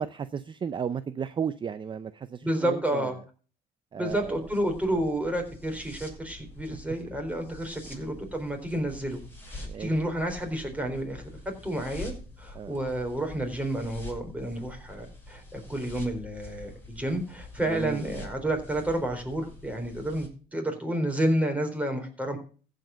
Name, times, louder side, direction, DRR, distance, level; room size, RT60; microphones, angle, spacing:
voice 1, 0.0-3.1 3.9-4.4 4.9-5.0 7.9-8.0 9.6-9.9 12.5-12.7 17.7-18.0, right 7 dB, 30° right, 0.5 m, -34 dB
voice 2, 2.4-3.2 4.0-9.2 9.5-12.1 12.4-22.4, right 1 dB, 10° right, 3.8 m, -30 dB
sound 1, 4.1-20.3, left 2 dB, 15° left, 6.8 m, -45 dB
15.0 x 5.1 x 6.8 m
cardioid pair, 110°, 17 cm